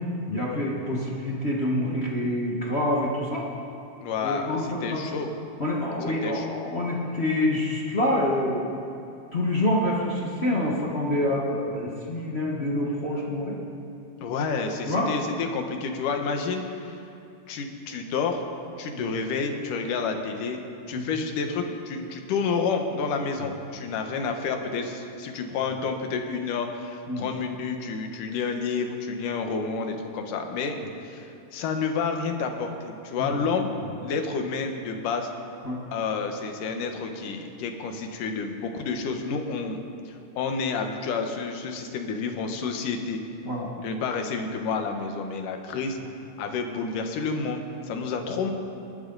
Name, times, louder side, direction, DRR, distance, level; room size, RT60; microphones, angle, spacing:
voice 1, 0.3-3.5 4.2-4.6 4.9-5.1 5.6-8.6 9.3-13.6 14.9-15.1 18.9-19.1 20.9-21.0 27.1-27.2 33.2-33.3 35.6-35.8 43.4-43.7, left 1 dB, 50° left, -4 dB, 0.7 m, -26 dB
voice 2, 4.0-5.3 6.2-6.6 14.2-17.0 17.5-18.4 18.8-20.6 20.9-33.7 34.0-35.3 35.9-39.8 40.1-43.2 43.8-46.0 46.4-48.5, left 5 dB, 70° left, 4 dB, 2.7 m, -29 dB
26.5 x 11.5 x 4.0 m, 2.7 s
omnidirectional pair, 4.0 m